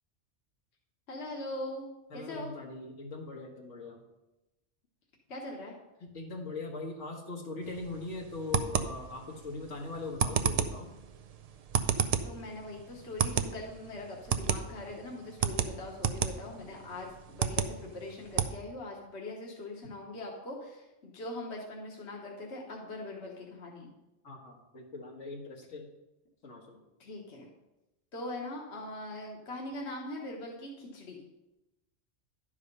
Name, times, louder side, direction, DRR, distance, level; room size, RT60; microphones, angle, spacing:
voice 1, 1.1-2.5 5.3-5.7 12.2-23.9 27.0-27.5 28.1-31.2, left 2 dB, 65° left, -1 dB, 1.5 m, -41 dB
voice 2, 2.1-4.0 6.0-10.9 24.2-25.9 26.4-26.8, left 3 dB, 85° left, 0 dB, 1.8 m, -41 dB
sound 1, 7.6-18.5, right 7 dB, 55° right, 0.4 m, -33 dB
11.0 x 4.9 x 5.3 m, 0.98 s
omnidirectional pair, 1.2 m